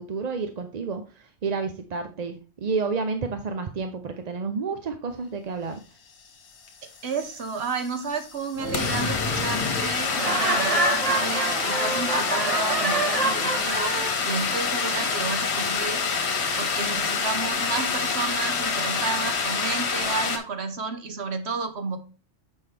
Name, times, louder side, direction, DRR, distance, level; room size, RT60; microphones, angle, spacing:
voice 1, 0.0-5.7, right 4 dB, 45° right, 7 dB, 0.6 m, -30 dB
sound 1, 6.7-6.8 6.9-20.4, left 5 dB, 60° left, 1.3 m, -27 dB
voice 2, 7.0-14.0 14.2-16.0 16.6-22.0, right 4 dB, 60° right, 7 dB, 1.1 m, -31 dB
sound 2, 8.5-10.1, left 3 dB, 40° left, 1.5 m, -31 dB
Laughter, 10.1-14.1, right 2 dB, 30° right, 1.2 m, -26 dB
7.6 x 5.4 x 3.3 m, 0.33 s
omnidirectional pair, 1.3 m